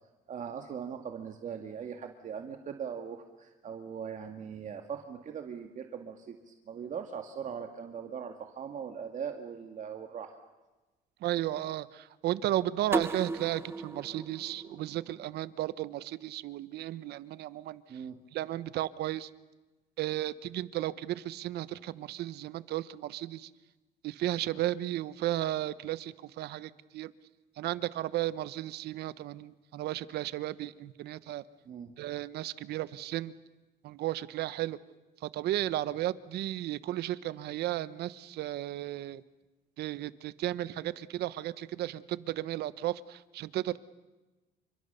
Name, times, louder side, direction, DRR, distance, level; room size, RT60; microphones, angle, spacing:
voice 1, 0.3-10.4 17.9-18.2 31.7-31.9, right 7 dB, 50° right, 5 dB, 2.0 m, -40 dB
voice 2, 11.2-17.8 18.3-19.3 20.0-23.5 24.0-27.1 27.6-31.4 32.0-33.3 33.8-34.8 35.2-39.2 39.8-43.8, right 14 dB, 75° right, 16 dB, 1.1 m, -34 dB
sound 1, 12.9-15.7, right 3 dB, 15° right, 0.8 m, -36 dB
29.0 x 25.5 x 6.8 m, 1.1 s
cardioid pair, 110°, 17 cm